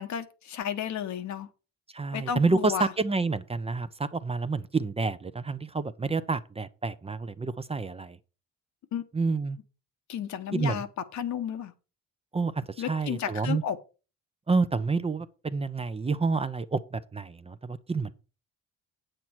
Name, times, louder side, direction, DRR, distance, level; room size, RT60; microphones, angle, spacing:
voice 1, 0.0-1.5 2.1-2.9 8.9-9.0 10.1-10.9 11.1-11.7 12.8-13.8, left 9 dB, 70° left, 1.1 m, -32 dB
voice 2, 1.9-8.2 9.1-9.6 10.5-10.8 12.3-13.6 14.5-18.1, right 4 dB, 20° right, 0.6 m, -29 dB
8.4 x 7.7 x 4.5 m
cardioid pair, 90°, 30 cm